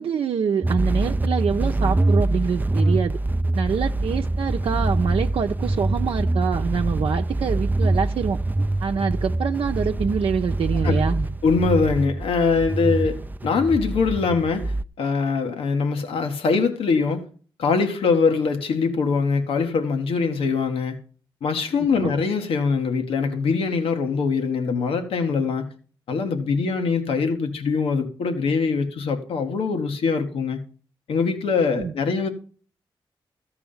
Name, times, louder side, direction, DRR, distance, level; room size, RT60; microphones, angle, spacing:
voice 1, 0.0-3.2 3.5-8.4 8.8-11.3 22.0-22.1 31.7-31.9, right 6 dB, 75° right, 0.7 m, -25 dB
sound 1, 0.6-14.8, right 2 dB, 20° right, 0.4 m, -24 dB
voice 2, 11.4-17.2 17.6-21.0 21.4-25.6 26.1-30.6 31.1-32.3, left 5 dB, 90° left, 1.6 m, -23 dB
14.0 x 4.9 x 7.1 m
cardioid pair, 60°, 9 cm